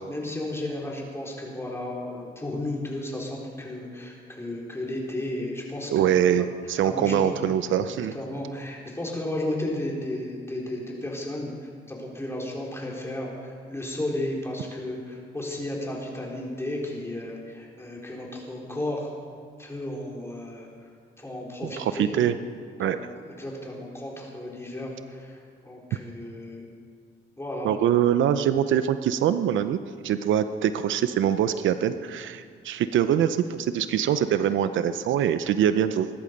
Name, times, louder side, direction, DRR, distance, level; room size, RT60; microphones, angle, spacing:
voice 1, 0.1-6.1 6.8-7.3 7.8-19.1 19.6-20.7 21.2-22.1 22.7-22.9 23.2-25.4 25.6-26.6 27.4-27.7, left 1 dB, 15° left, -2 dB, 4.2 m, -33 dB
voice 2, 5.9-8.1 21.6-22.3 22.8-23.0 27.6-36.1, right 9 dB, 75° right, 11 dB, 0.7 m, -24 dB
21.5 x 11.5 x 5.3 m, 2.1 s
cardioid pair, 90°, 20 cm